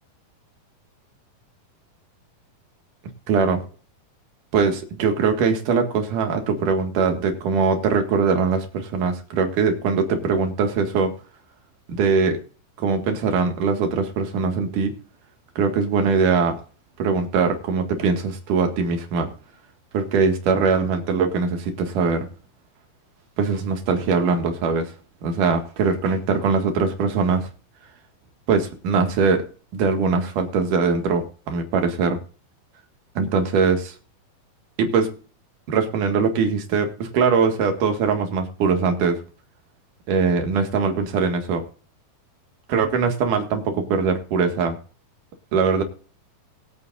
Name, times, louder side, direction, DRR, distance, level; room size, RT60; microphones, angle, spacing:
voice 1, 3.3-3.6 4.5-11.1 11.9-12.4 12.8-15.0 15.6-16.6 17.0-19.3 19.9-22.3 23.4-24.9 25.2-27.5 28.5-29.5 29.7-32.2 33.2-33.9 34.8-35.1 35.7-39.2 40.1-41.6 42.7-44.8 45.5-45.8, right 5 dB, 60° right, 5 dB, 3.1 m, -21 dB
21.5 x 8.5 x 2.5 m, 0.39 s
omnidirectional pair, 4.3 m